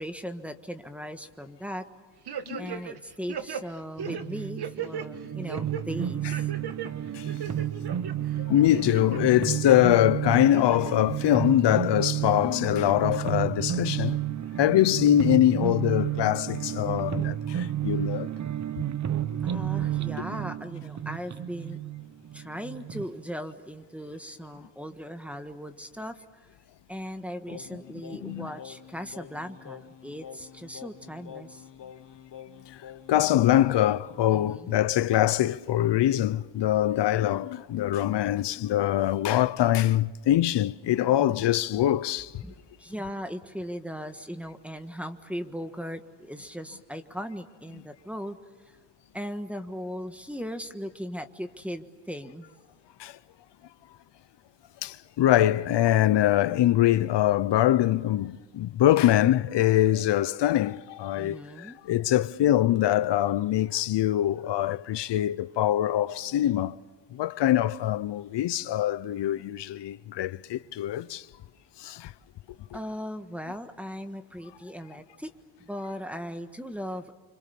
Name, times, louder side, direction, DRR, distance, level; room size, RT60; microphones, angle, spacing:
voice 1, 0.0-1.8 2.6-6.5 19.4-21.8 22.3-26.2 26.9-31.7 34.3-34.8 41.2-41.4 42.4-48.4 49.1-52.5 61.2-61.8 72.7-75.3 75.6-77.1, equal, 5° right, 1.4 m, -38 dB
sound 1, 2.3-3.0 3.3-5.1 5.5-5.8 6.3-6.9 7.3-8.1 8.5-9.2 9.6-9.8 10.4-10.9 11.3-11.4, right 7 dB, 60° right, 1.6 m, -36 dB
voice 2, 2.5-2.8 7.1-7.3 8.4-14.2 14.6-18.3 28.2-28.5 32.7-42.4 53.0-53.2 54.8-66.8 67.1-71.3 71.8-72.1 72.7-72.8, left 13 dB, 75° left, 0.8 m, -23 dB
sound 2, 4.0-23.1, right 11 dB, 40° right, 0.8 m, -31 dB
Singing, 27.5-34.3, left 9 dB, 45° left, 1.2 m, -47 dB
30.0 x 25.5 x 7.0 m
wide cardioid pair, 140°, 43 cm